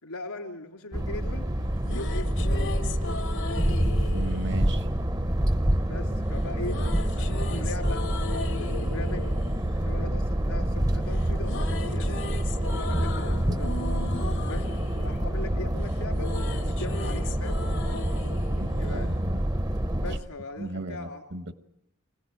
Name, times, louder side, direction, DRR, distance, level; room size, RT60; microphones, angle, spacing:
voice 1, 0.0-1.5 1.8-2.7 5.8-6.8 7.2-8.0 8.6-9.4 9.7-12.2 12.7-13.8 14.4-14.7 15.0-16.3 16.6-17.7 18.7-19.1 19.9-21.2, left 2 dB, 85° left, 3 dB, 3.3 m, -39 dB
sound 1, 0.9-20.2, right 1 dB, 15° right, 0.8 m, -27 dB
sound 2, 1.6-5.8 6.6-10.9 11.1-19.6, left 4 dB, 55° left, 1.0 m, -39 dB
voice 2, 4.1-4.9 18.6-19.4 20.6-21.5, right 2 dB, 50° right, 10 dB, 1.3 m, -36 dB
25.0 x 16.5 x 9.1 m, 0.81 s
head